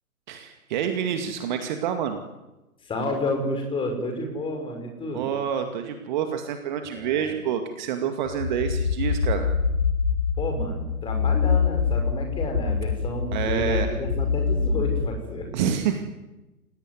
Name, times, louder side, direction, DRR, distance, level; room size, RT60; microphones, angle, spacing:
voice 1, 0.3-2.2 5.1-9.5 13.3-13.9 15.5-16.0, right 8 dB, 30° right, 7 dB, 2.2 m, -27 dB
voice 2, 2.8-5.2 6.9-7.3 10.4-15.5, left 1 dB, 10° left, 3 dB, 5.8 m, -30 dB
sound 1, 8.3-15.1, left 5 dB, 55° left, 4.2 m, -25 dB
29.0 x 17.5 x 9.7 m, 1.0 s
figure-of-eight pair, 125°, 44 cm